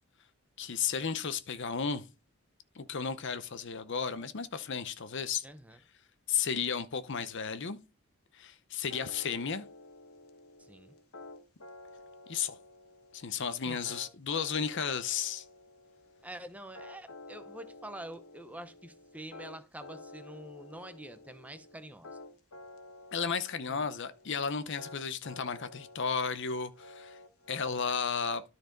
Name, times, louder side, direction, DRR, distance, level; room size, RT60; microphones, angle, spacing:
voice 1, 0.6-2.0 2.8-5.4 6.3-7.8 8.3-9.7 12.3-12.6 13.1-15.4 23.1-27.2 27.5-28.4, left 6 dB, 55° left, 0.7 m, -33 dB
voice 2, 5.4-5.8 10.6-10.9 13.6-13.8 16.2-22.1 23.7-23.8, right 1 dB, 5° right, 0.6 m, -46 dB
sound 1, 8.9-27.8, left 2 dB, 75° left, 1.5 m, -51 dB
13.0 x 4.5 x 3.9 m
head